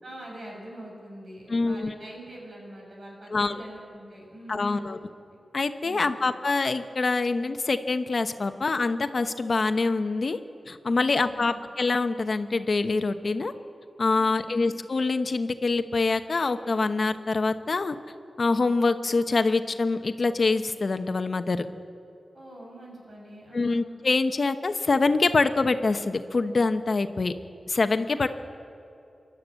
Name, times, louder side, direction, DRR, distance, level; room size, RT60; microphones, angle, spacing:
voice 1, 0.0-5.0 5.8-6.2 11.1-11.6 14.1-14.5 22.3-23.9 28.2-28.3, right 1 dB, 55° right, -1 dB, 6.2 m, -44 dB
voice 2, 1.5-1.9 3.3-3.6 4.5-5.0 5.5-10.4 10.7-13.5 14.0-18.0 18.4-21.7 23.5-27.3 27.7-28.3, left 3 dB, 50° left, 9 dB, 0.9 m, -25 dB
27.5 x 11.5 x 8.2 m, 2.7 s
wide cardioid pair, 105°, 0 cm